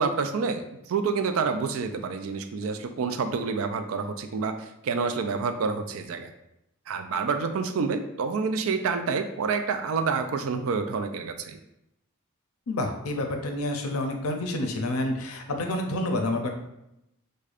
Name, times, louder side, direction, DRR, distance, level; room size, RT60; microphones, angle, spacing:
voice 1, 0.0-6.3 6.9-11.6, right 5 dB, 75° right, 8 dB, 0.4 m, -28 dB
voice 2, 12.7-16.5, left 1 dB, 85° left, 4 dB, 0.5 m, -28 dB
4.8 x 2.2 x 2.4 m, 0.84 s
head